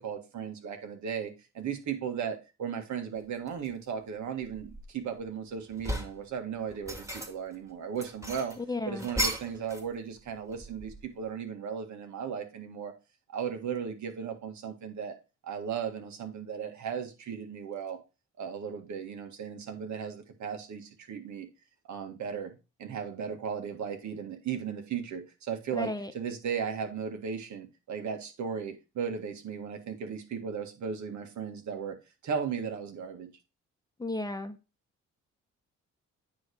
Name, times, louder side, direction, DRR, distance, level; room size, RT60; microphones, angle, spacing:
voice 1, 0.0-8.5 8.9-12.9 13.3-15.2 15.4-18.0 18.4-21.5 21.9-32.0 32.2-33.3, right 7 dB, 70° right, 1.7 m, -36 dB
sound 1, 3.5-3.7 4.2-5.2 5.6-6.2 6.7-7.5 8.0-9.9 10.2-11.2, right 1 dB, 10° right, 1.9 m, -36 dB
voice 2, 8.6-9.1 25.8-26.1 34.0-34.6, left 2 dB, 15° left, 0.9 m, -33 dB
9.4 x 3.3 x 4.7 m
cardioid pair, 90°, 30 cm